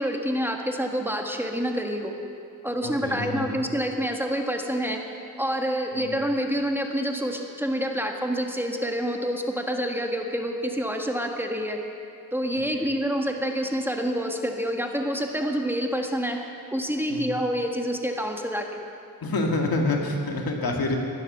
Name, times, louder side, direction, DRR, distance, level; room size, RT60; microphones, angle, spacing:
voice 1, 0.0-2.1 2.6-5.0 5.4-11.8 12.3-16.4 16.7-18.8 20.8-20.9, equal, 5° right, 2 dB, 1.6 m, -27 dB
voice 2, 2.8-3.6 5.9-6.2 12.7-12.9 17.1-17.4 19.2-21.0, left 2 dB, 75° left, 1 dB, 2.0 m, -27 dB
16.0 x 11.5 x 6.7 m, 2.6 s
cardioid pair, 70°, 36 cm